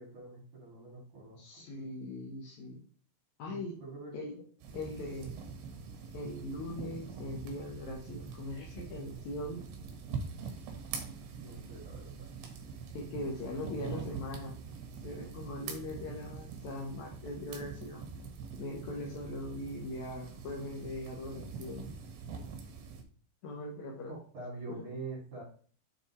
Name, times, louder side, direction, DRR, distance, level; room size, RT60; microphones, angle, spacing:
voice 1, 0.0-1.6 3.5-4.2 11.3-12.3 24.1-25.4, right 3 dB, 45° right, -5 dB, 4.0 m, -45 dB
voice 2, 1.4-2.8 3.4-3.8 4.1-4.3 4.7-5.4 6.1-9.6 12.9-14.6 15.0-18.1 18.6-21.9 23.4-24.1, left 1 dB, 70° left, -1 dB, 1.7 m, -40 dB
sound 1, 4.6-23.0, right 5 dB, 65° right, 3.4 m, -44 dB
8.2 x 6.4 x 3.3 m, 0.43 s
omnidirectional pair, 5.4 m